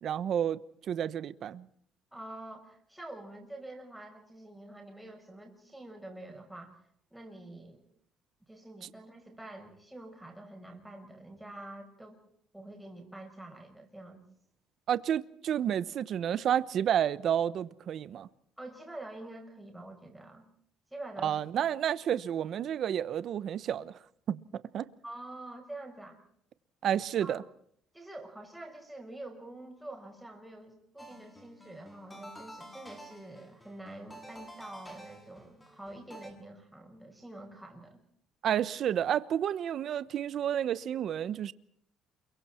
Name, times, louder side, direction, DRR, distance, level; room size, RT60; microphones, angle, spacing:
voice 1, 0.0-0.6 0.9-1.7 14.9-18.3 21.2-23.9 24.3-24.9 26.8-27.4 38.4-41.5, right 9 dB, 50° right, 1.0 m, -30 dB
voice 2, 2.1-6.8 7.1-7.8 8.5-12.2 12.5-14.2 18.6-20.4 20.9-21.7 25.0-26.2 27.2-27.4 27.9-38.0, right 1 dB, 5° right, 5.7 m, -46 dB
sound 1, 31.0-36.3, equal, 10° left, 7.1 m, -50 dB
29.0 x 23.0 x 4.4 m
cardioid pair, 140°, 0 cm